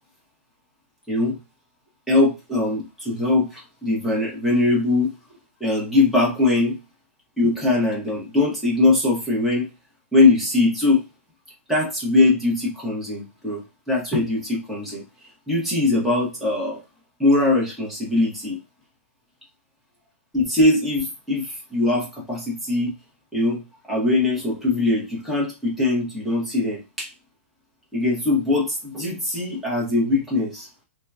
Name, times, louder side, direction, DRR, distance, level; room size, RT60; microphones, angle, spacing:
voice 1, 1.1-1.4 2.1-5.1 5.6-6.8 7.4-9.7 10.1-11.0 11.7-15.0 15.5-16.8 17.2-18.6 20.3-23.0 23.3-27.1 27.9-30.7, left 2 dB, ahead, -5 dB, 0.9 m, -21 dB
2.8 x 2.2 x 2.3 m, 0.27 s
hypercardioid pair, 160°, 7 cm